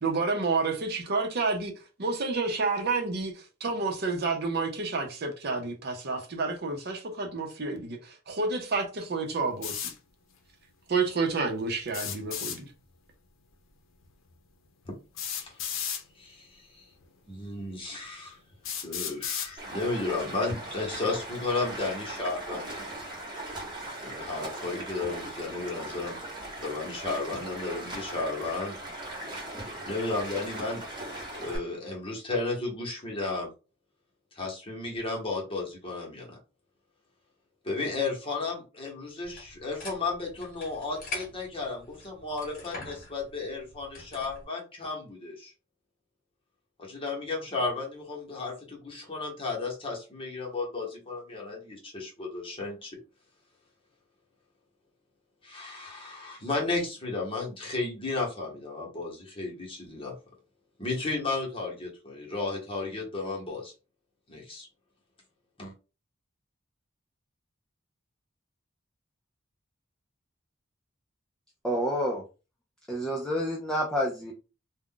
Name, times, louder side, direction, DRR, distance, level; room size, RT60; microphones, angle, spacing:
voice 1, 0.0-1.7 2.0-9.9 10.9-12.7, right 3 dB, 55° right, 0.7 m, -29 dB
sound 1, 9.6-9.9 11.9-12.6 14.0-14.1 15.2-16.0 17.0-17.1 17.8-17.9 18.6-19.5, left 8 dB, 80° left, 0.6 m, -34 dB
voice 2, 15.2-15.6 16.2-16.9 17.3-18.4 18.8-22.8 24.0-26.2 26.6-28.7 29.6-30.8 31.3-33.5 34.3-36.4 37.6-45.5 46.8-53.0 55.4-60.2 60.8-63.7 65.6-65.7, left 3 dB, 30° left, 1.0 m, -33 dB
Stream, 19.6-31.6, right 1 dB, 20° right, 1.1 m, -39 dB
sound 2, 39.2-44.4, left 2 dB, 45° left, 1.2 m, -43 dB
voice 3, 71.6-72.2 72.9-74.3, equal, 5° left, 0.4 m, -28 dB
2.4 x 2.2 x 3.7 m
head